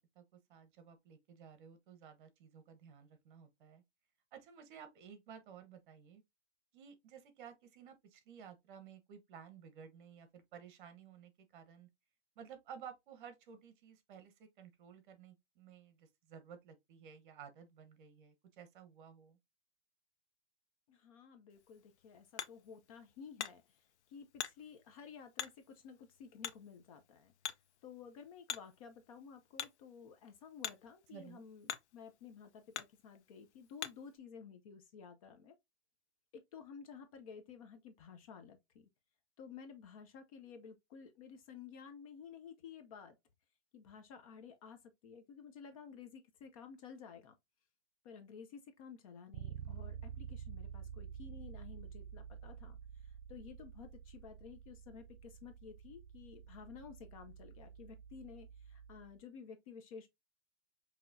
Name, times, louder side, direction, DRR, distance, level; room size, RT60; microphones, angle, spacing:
voice 1, 0.1-3.8 4.3-6.2 6.7-11.9 12.4-19.4 31.1-31.4, right 7 dB, 50° right, 1.1 m, -55 dB
voice 2, 20.9-27.3 27.8-35.5 36.3-38.9 39.4-43.2 43.7-47.3 48.0-52.8 53.0-60.1, left 6 dB, 30° left, 0.5 m, -53 dB
Hammer, 21.5-34.2, left 9 dB, 85° left, 0.7 m, -48 dB
Bass guitar, 49.3-59.2, right 8 dB, 75° right, 0.5 m, -49 dB
5.7 x 2.9 x 2.6 m
hypercardioid pair, 155°, 33 cm